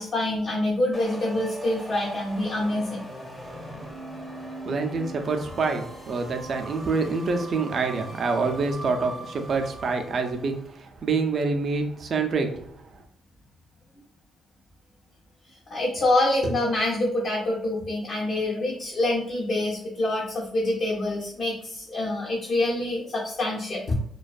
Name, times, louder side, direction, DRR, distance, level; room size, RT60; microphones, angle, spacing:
voice 1, 0.0-3.1 15.7-23.9, left 1 dB, 50° left, -6 dB, 0.7 m, -26 dB
sound 1, 0.9-10.6, right 1 dB, 10° left, 0.6 m, -40 dB
voice 2, 4.6-13.0, right 4 dB, 50° right, 5 dB, 0.4 m, -27 dB
2.4 x 2.2 x 2.4 m, 0.67 s
cardioid pair, 90°, 0 cm